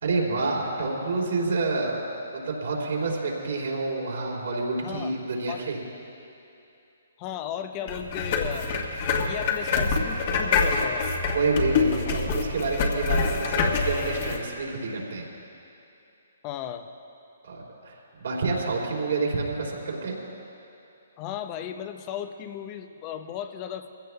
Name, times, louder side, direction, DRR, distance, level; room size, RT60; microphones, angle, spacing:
voice 1, 0.0-2.0 2.3-5.8 11.3-15.3 17.4-20.1, right 3 dB, 75° right, -2 dB, 3.2 m, -28 dB
voice 2, 4.8-5.2 5.5-5.7 7.2-8.7 9.2-11.1 12.1-12.2 16.4-16.9 21.2-23.9, left 9 dB, 30° left, 8 dB, 0.6 m, -35 dB
sound 1, 7.9-14.4, left 4 dB, 45° left, 1.5 m, -26 dB
22.5 x 16.0 x 2.3 m, 2.7 s
hypercardioid pair, 140°, 0 cm